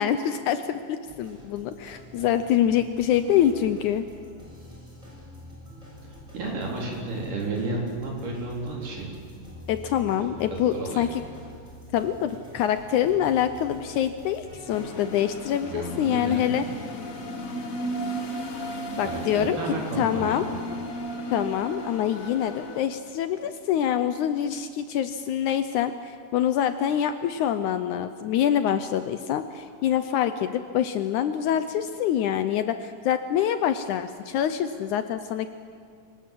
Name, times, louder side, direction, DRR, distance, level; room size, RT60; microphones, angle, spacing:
voice 1, 0.0-4.1 9.7-11.2 11.9-16.6 19.0-19.6 20.0-20.5 21.3-35.5, left 10 dB, 75° left, 10 dB, 1.9 m, -25 dB
sound 1, 1.0-15.0, equal, 10° right, 6.6 m, -46 dB
voice 2, 6.3-9.2 10.2-11.1 15.6-16.5 19.0-20.6, right 2 dB, 65° right, -1 dB, 5.4 m, -32 dB
sound 2, 14.7-22.8, right 1 dB, 55° left, 0.9 m, -34 dB
25.0 x 19.0 x 7.6 m, 2.2 s
omnidirectional pair, 4.1 m